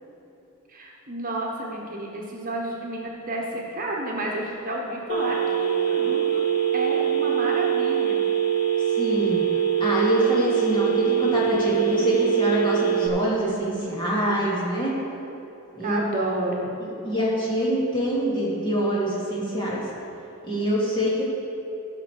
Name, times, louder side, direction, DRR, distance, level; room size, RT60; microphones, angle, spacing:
voice 1, 0.7-6.4 6.7-8.2 15.8-16.7, right 1 dB, 40° right, -1 dB, 1.2 m, -30 dB
Telephone, 5.1-13.1, right 9 dB, 85° left, 1.3 m, -23 dB
voice 2, 9.0-9.4 9.8-14.9 15.7-16.0 16.8-19.8 20.4-21.2, equal, 25° left, -7 dB, 2.7 m, -25 dB
15.5 x 5.9 x 4.9 m, 2.9 s
head